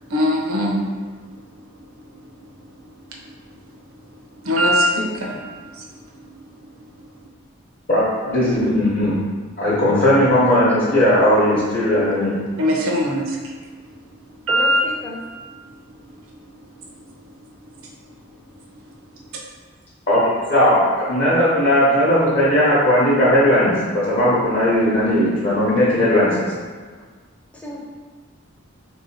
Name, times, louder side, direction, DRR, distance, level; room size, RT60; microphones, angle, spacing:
voice 1, 0.1-0.8 4.4-5.4 5.8-5.9 6.1-6.3 12.6-13.5 14.4-14.8 16.8-16.9, equal, 85° right, -2 dB, 0.6 m, -20 dB
voice 2, 7.9-9.2 9.6-12.3 20.1-20.2 20.5-26.5, left 1 dB, 45° left, -10 dB, 0.7 m, -17 dB
voice 3, 9.9-10.2 10.5-11.8 14.5-15.2 27.0-27.1 27.5-27.8, equal, 5° left, -4 dB, 0.4 m, -32 dB
3.5 x 2.7 x 2.7 m, 1.4 s
head